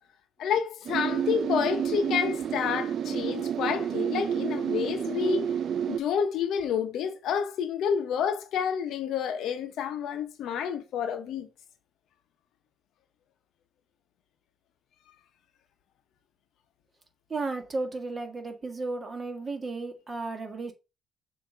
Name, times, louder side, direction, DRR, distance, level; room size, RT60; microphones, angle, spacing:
voice 1, 0.4-5.4 5.9-11.5, left 7 dB, 80° left, 0.9 m, -29 dB
sound 1, 0.9-6.0, right 8 dB, 65° right, 0.3 m, -30 dB
voice 2, 17.3-20.7, right 3 dB, 30° right, 1.8 m, -34 dB
6.6 x 2.9 x 5.1 m
cardioid pair, 90°, 0 cm